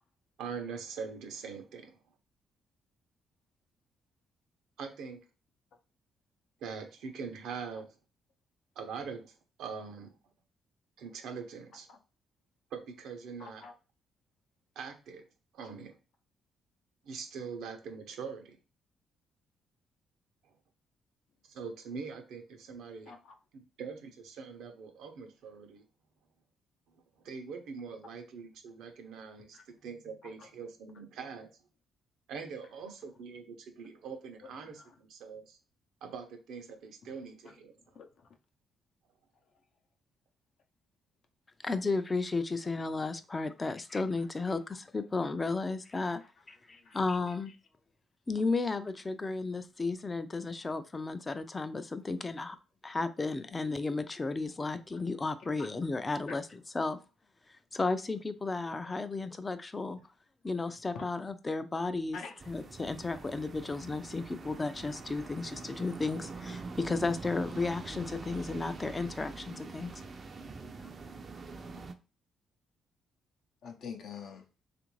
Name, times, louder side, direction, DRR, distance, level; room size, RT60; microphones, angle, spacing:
voice 1, 0.4-2.0 4.8-5.2 6.6-7.9 8.8-10.1 11.0-11.9 12.7-13.6 14.8-15.2 15.5-16.0 17.0-18.5 20.4-20.5 21.5-23.2 23.5-25.8 26.9-31.5 32.3-35.6 36.0-37.7, right 5 dB, 80° right, 0.7 m, -43 dB
voice 2, 13.4-13.7 23.1-23.3 29.5-29.6 37.4-37.5 37.9-38.3 46.7-47.0 55.6-55.7 56.3-56.4 60.9-61.1 62.1-62.4 73.6-74.4, left 5 dB, 70° left, 0.6 m, -45 dB
voice 3, 41.6-46.2 46.5-47.5 48.3-52.6 52.8-57.0 57.7-60.0 60.4-62.2 62.5-70.0 70.5-70.7, left 3 dB, 25° left, 0.4 m, -34 dB
sound 1, 62.4-71.9, right 4 dB, 40° right, 0.4 m, -44 dB
3.4 x 2.5 x 3.1 m
cardioid pair, 90°, 0 cm